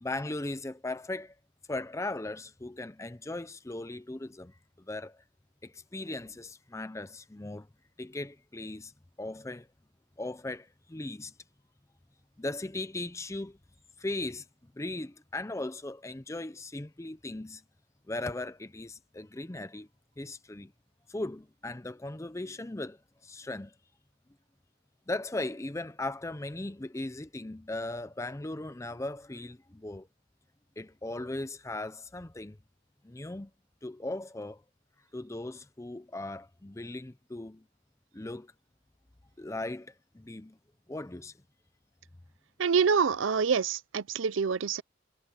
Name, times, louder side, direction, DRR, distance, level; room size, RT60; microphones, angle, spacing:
voice 1, 0.0-1.3 1.7-5.2 5.6-7.7 8.0-8.9 9.2-9.7 10.2-11.3 12.4-13.6 14.0-14.5 14.8-17.6 18.1-19.9 20.2-20.7 21.1-23.7 25.1-30.1 30.8-32.6 33.0-33.5 33.8-34.6 35.1-37.6 38.1-38.5 39.4-40.6 40.9-41.3, left 2 dB, 15° left, 0.5 m, -38 dB
voice 2, 42.6-44.8, right 6 dB, 75° right, 0.5 m, -26 dB
head